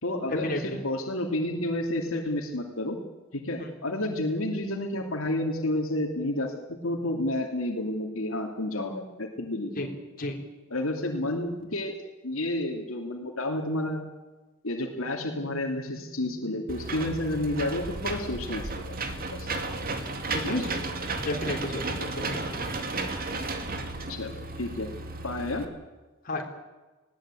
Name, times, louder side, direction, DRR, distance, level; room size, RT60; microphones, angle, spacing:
voice 1, 0.0-3.0 3.3-9.9 10.7-11.9 12.2-14.0 14.6-19.0 19.3-19.5 20.4-20.8 24.1-24.9 25.2-25.7, left 1 dB, 80° left, 2 dB, 2.8 m, -30 dB
Engine / Mechanisms, 16.7-25.6, right 3 dB, 45° right, 2.3 m, -33 dB
voice 2, 21.2-22.6 26.3-26.5, left 1 dB, 45° left, 1 dB, 3.9 m, -32 dB
20.0 x 17.5 x 9.0 m, 1.2 s
head